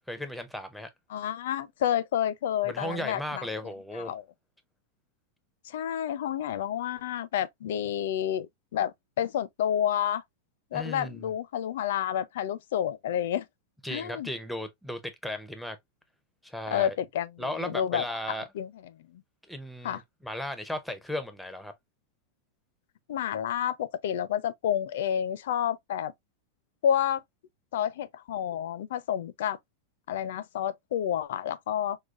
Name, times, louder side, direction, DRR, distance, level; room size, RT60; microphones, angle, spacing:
voice 1, 0.1-0.9 2.6-4.1 10.7-11.3 13.8-15.8 16.4-17.0 17.4-18.4 19.5-21.7, left 1 dB, ahead, 0.6 m, -36 dB
voice 2, 1.1-3.5 3.9-4.2 5.6-10.2 10.7-13.5 13.9-14.3 16.7-18.7 19.0-19.2 19.8-20.0 23.1-26.1 26.8-27.2 27.7-29.6 30.1-32.0, left 10 dB, 70° left, 0.5 m, -30 dB
4.8 x 2.2 x 2.4 m
supercardioid pair, 160°, 0 cm